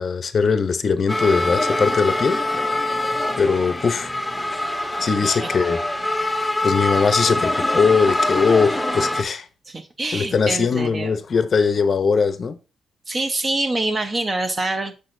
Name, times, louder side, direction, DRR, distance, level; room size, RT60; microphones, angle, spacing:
voice 1, 0.0-2.4 2.8-2.9 3.4-4.1 5.0-5.8 6.6-9.5 10.1-12.6, left 5 dB, 40° left, 0.6 m, -20 dB
sound 1, 1.1-9.2, left 1 dB, 5° left, 0.7 m, -24 dB
voice 2, 5.2-5.5 9.7-11.2 13.1-14.9, right 2 dB, 30° right, 0.8 m, -25 dB
6.6 x 6.2 x 2.6 m
cardioid pair, 130°, 0 cm